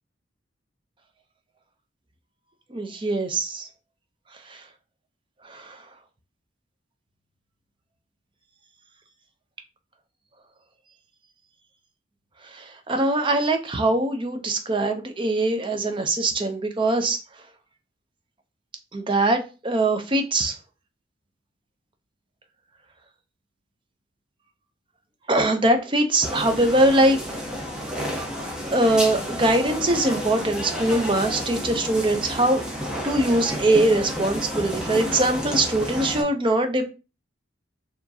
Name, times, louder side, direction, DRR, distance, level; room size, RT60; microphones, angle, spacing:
voice 1, 2.7-3.6 12.9-17.2 18.9-20.5 25.3-27.2 28.7-32.6 33.0-36.9, right 1 dB, 25° right, 6 dB, 0.6 m, -22 dB
sound 1, 26.2-36.2, equal, 5° right, 0.9 m, -31 dB
4.6 x 2.9 x 2.7 m, 0.31 s
head